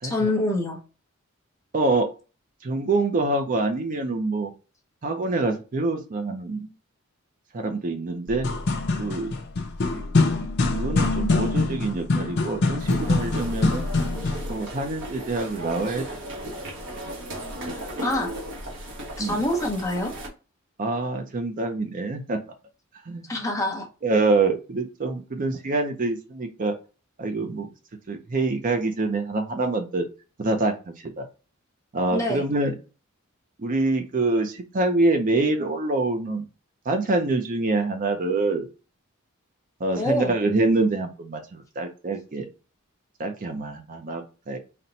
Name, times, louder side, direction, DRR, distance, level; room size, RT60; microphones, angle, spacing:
voice 1, 0.0-0.8 17.7-18.3 19.2-20.1 23.3-23.9 32.1-32.4 40.0-40.4, left 1 dB, 15° left, 0.9 m, -26 dB
voice 2, 1.7-2.1 2.6-4.5 5.0-6.7 7.5-8.5 9.0-9.3 9.9-10.0 10.7-13.9 14.5-16.0 19.2-19.4 20.8-22.4 23.1-23.2 24.0-26.7 27.2-27.7 28.1-30.1 30.4-31.3 31.9-32.7 33.6-36.4 36.9-38.7 39.8-42.5 43.2-44.6, right 2 dB, 40° right, 0.5 m, -25 dB
sound 1, 8.3-14.5, left 3 dB, 55° left, 0.6 m, -24 dB
sound 2, 12.8-20.3, equal, 60° right, 1.1 m, -36 dB
4.1 x 2.2 x 3.9 m
head